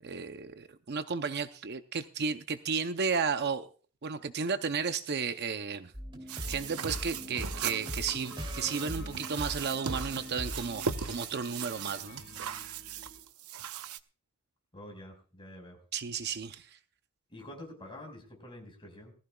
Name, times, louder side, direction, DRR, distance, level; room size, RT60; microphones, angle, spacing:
voice 1, 0.0-3.7 4.0-5.9 6.5-12.7 15.9-16.8, right 5 dB, 50° right, 0.6 m, -33 dB
sound 1, 5.9-11.1, equal, 25° right, 2.8 m, -40 dB
sound 2, 6.3-14.0, right 7 dB, 90° right, 0.7 m, -39 dB
sound 3, 6.4-13.2, left 3 dB, 70° left, 3.4 m, -51 dB
voice 2, 14.7-15.8 17.3-19.1, left 1 dB, 25° left, 4.9 m, -47 dB
20.0 x 14.5 x 2.3 m
head